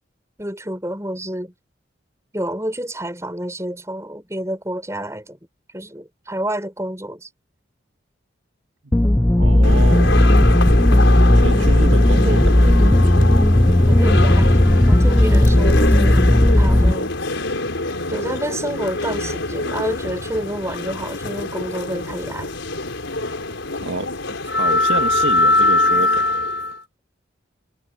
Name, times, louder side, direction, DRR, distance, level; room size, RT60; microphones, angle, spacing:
voice 1, 0.4-1.5 2.3-5.4 5.7-7.3 13.9-16.2 16.6-17.1 18.1-22.6, right 1 dB, 15° right, 7.1 m, -29 dB
sound 1, 8.9-16.9, left 1 dB, 10° left, 0.4 m, -14 dB
voice 2, 9.3-10.3 11.4-13.4 23.8-24.1 24.5-26.3, right 2 dB, 80° right, 1.9 m, -29 dB
sound 2, 9.6-26.8, left 2 dB, 80° left, 4.5 m, -23 dB
head